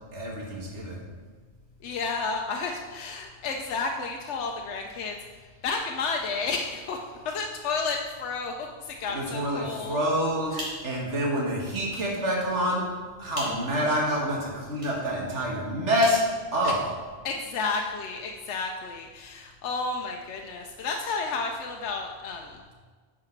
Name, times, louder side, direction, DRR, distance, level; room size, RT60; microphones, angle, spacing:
voice 1, 0.1-1.0 9.1-10.6 10.8-12.8 13.2-16.2 16.5-16.8, equal, 90° right, -3 dB, 1.9 m, -27 dB
voice 2, 1.8-7.0 7.2-10.0 10.5-10.8 16.6-16.8 17.2-22.6, left 4 dB, 80° left, 2 dB, 0.9 m, -32 dB
sound 1, 10.3-17.1, equal, 30° right, 2.2 m, -43 dB
9.6 x 4.9 x 4.5 m, 1.5 s
omnidirectional pair, 1.2 m